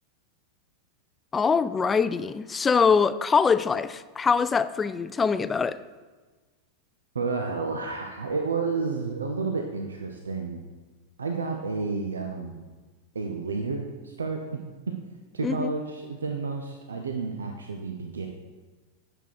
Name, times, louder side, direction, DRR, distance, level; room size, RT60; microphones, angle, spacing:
voice 1, 1.3-5.8 15.4-15.7, left 5 dB, 15° left, 0.3 m, -23 dB
voice 2, 7.1-10.6 11.2-12.6 13.1-14.6 14.9-15.0 15.3-18.3, right 4 dB, 70° right, 0.7 m, -31 dB
9.0 x 6.5 x 4.7 m
figure-of-eight pair, 90°, 0 cm